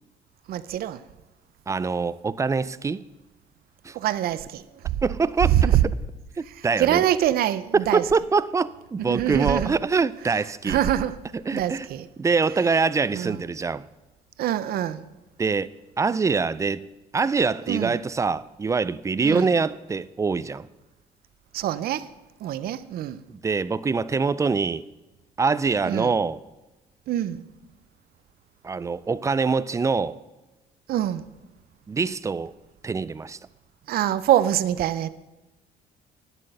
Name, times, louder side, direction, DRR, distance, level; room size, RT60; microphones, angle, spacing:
voice 1, 0.5-1.0 3.9-5.0 5.5-5.8 6.8-8.0 9.0-9.7 10.7-11.1 11.5-12.0 13.1-13.4 14.4-15.0 17.7-17.9 19.2-19.5 21.5-22.1 22.4-23.2 25.9-26.1 27.1-27.4 30.9-31.3 33.9-35.1, right 12 dB, 65° right, 0.6 m, -24 dB
voice 2, 1.7-3.0 3.8-3.9 5.0-5.8 6.4-7.0 7.7-10.8 11.3-11.9 12.2-13.9 15.4-15.7 16.0-16.9 17.1-20.7 23.3-24.9 25.4-26.4 28.6-30.2 31.9-32.5 32.8-33.4, right 4 dB, 20° right, 0.3 m, -24 dB
10.0 x 8.3 x 6.5 m
cardioid pair, 110°, 17 cm